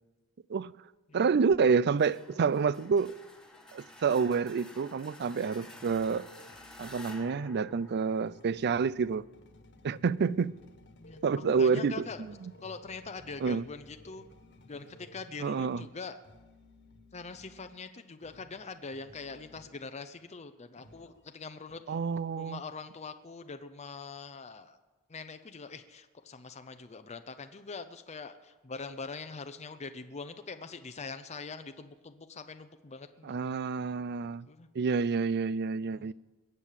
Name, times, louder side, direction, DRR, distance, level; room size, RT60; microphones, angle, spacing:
voice 1, 1.1-3.1 3.7-6.3 6.8-9.3 9.8-10.6 11.2-12.0 13.4-13.6 15.4-15.9 21.9-22.6 33.2-34.5 34.7-36.1, right 5 dB, 50° right, 0.4 m, -28 dB
sound 1, 2.0-8.7, left 1 dB, 5° left, 1.5 m, -51 dB
sound 2, 5.4-17.7 18.2-19.9 20.2-21.3 21.7-21.8, left 1 dB, 55° left, 1.6 m, -56 dB
voice 2, 11.5-12.3 12.6-14.2 14.7-16.2 17.1-22.0 22.4-24.8 25.1-33.4 34.5-34.7 35.8-36.1, left 4 dB, 30° left, 0.7 m, -43 dB
21.5 x 8.3 x 7.5 m
head